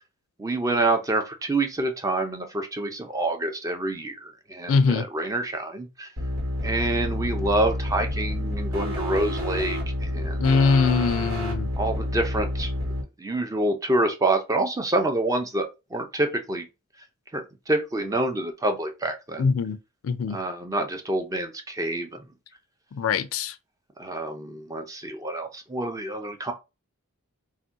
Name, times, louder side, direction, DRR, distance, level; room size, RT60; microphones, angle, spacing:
voice 1, 0.4-6.1 6.6-10.9 11.8-12.7 13.2-16.7 17.3-19.5 20.3-22.1 24.0-26.5, right 2 dB, 15° right, 0.4 m, -27 dB
voice 2, 4.7-5.1 10.4-11.7 19.4-19.8 20.0-20.4 22.9-23.6, left 5 dB, 65° left, 0.4 m, -22 dB
sound 1, 6.2-13.0, left 1 dB, 75° right, 1.3 m, -29 dB
2.6 x 2.2 x 3.6 m
head